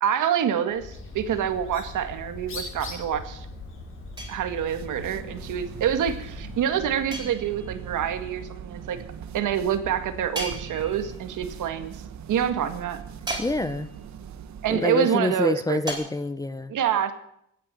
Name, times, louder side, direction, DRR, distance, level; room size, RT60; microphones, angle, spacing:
voice 1, 0.0-3.5 4.3-9.0 9.3-12.0 12.3-13.0 14.6-15.8 16.7-17.1, right 9 dB, 80° right, 9 dB, 1.9 m, -26 dB
Bird, 0.7-6.7, left 2 dB, 45° left, 5.7 m, -40 dB
sound 1, 4.2-4.9 7.1-7.9 10.3-11.3 13.3-14.1 15.9-16.0, right 1 dB, 15° right, 4.2 m, -36 dB
sound 2, 4.5-15.0, right 8 dB, 65° right, 1.1 m, -41 dB
voice 2, 13.4-13.9 14.7-16.7, left 2 dB, 10° left, 14 dB, 0.6 m, -27 dB
16.5 x 9.5 x 8.3 m, 0.73 s
cardioid pair, 160°, 30 cm